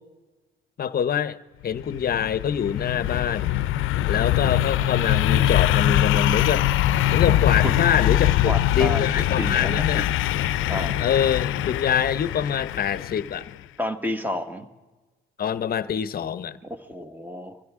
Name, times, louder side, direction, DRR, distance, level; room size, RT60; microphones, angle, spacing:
voice 1, 0.8-1.4 1.6-3.5 4.1-6.7 7.1-10.1 11.0-13.6 15.4-16.6, left 8 dB, 50° left, 0.8 m, -25 dB
sound 1, 1.8-13.4, left 12 dB, 85° left, 0.6 m, -23 dB
voice 2, 8.5-9.0 9.4-10.1 10.7-11.0 13.8-14.7 16.6-17.6, left 1 dB, 10° right, 1.5 m, -30 dB
24.0 x 16.0 x 3.7 m
cardioid pair, 90°, 20 cm